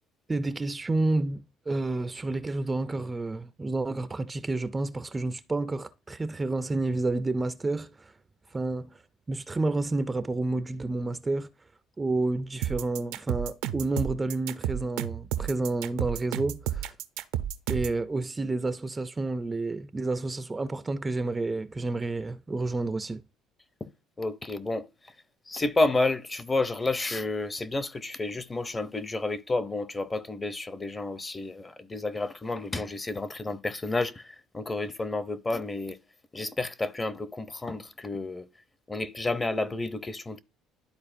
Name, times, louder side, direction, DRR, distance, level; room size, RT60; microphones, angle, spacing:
voice 1, 0.3-8.1 8.5-9.0 9.3-11.5 12.0-16.9 17.7-23.2, right 2 dB, 20° right, 0.4 m, -30 dB
sound 1, 12.6-18.0, right 11 dB, 85° right, 0.6 m, -31 dB
voice 2, 24.2-25.1 25.5-36.0 36.3-38.5 38.9-40.4, left 2 dB, 20° left, 0.6 m, -30 dB
12.0 x 4.1 x 2.6 m
cardioid pair, 100°, 0 cm